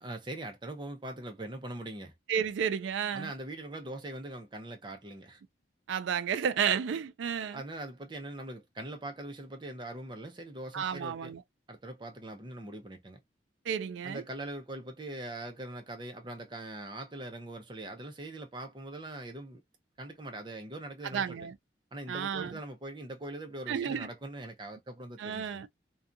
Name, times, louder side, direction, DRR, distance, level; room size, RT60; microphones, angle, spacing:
voice 1, 0.0-2.1 3.1-5.4 7.5-11.3 11.7-13.2 14.0-19.6 20.0-21.4 21.9-25.6, right 1 dB, 25° right, 0.5 m, -42 dB
voice 2, 2.3-3.3 5.9-7.6 10.7-11.4 13.7-14.2 21.1-21.6 22.1-22.6 23.7-24.1 25.2-25.7, right 7 dB, 80° right, 0.3 m, -32 dB
2.7 x 2.2 x 2.4 m
head